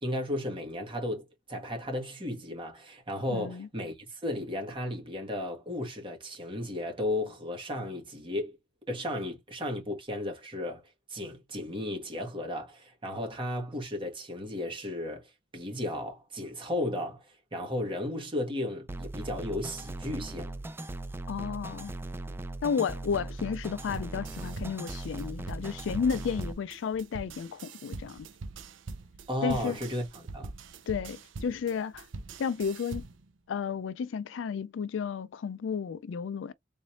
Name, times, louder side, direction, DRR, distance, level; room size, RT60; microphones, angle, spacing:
voice 1, 0.0-8.6 8.9-10.8 11.1-15.2 15.5-20.5 29.3-30.5, left 1 dB, 30° right, 1.7 m, -34 dB
voice 2, 3.3-3.7 21.3-21.9 22.6-28.3 29.4-29.8 30.9-32.1 32.4-33.0 33.5-36.5, left 6 dB, 75° left, 0.4 m, -32 dB
sound 1, 18.9-26.5, right 2 dB, 10° right, 0.3 m, -39 dB
sound 2, 23.8-33.3, right 3 dB, 80° right, 0.7 m, -43 dB
3.9 x 3.2 x 2.7 m
head